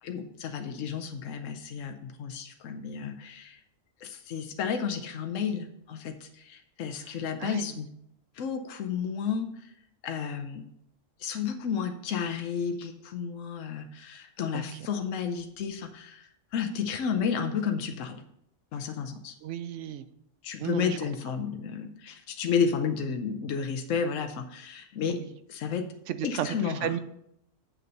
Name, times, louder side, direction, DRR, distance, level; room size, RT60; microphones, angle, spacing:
voice 1, 0.0-3.6 4.0-7.9 8.3-9.7 10.0-10.6 11.2-18.2 18.7-19.4 20.4-25.2 25.5-25.9 26.2-27.0, left 6 dB, 80° left, 6 dB, 1.1 m, -32 dB
voice 2, 19.4-20.1 20.6-21.0 26.1-27.0, right 10 dB, 75° right, 12 dB, 0.9 m, -33 dB
7.4 x 6.8 x 5.2 m, 0.75 s
omnidirectional pair, 1.3 m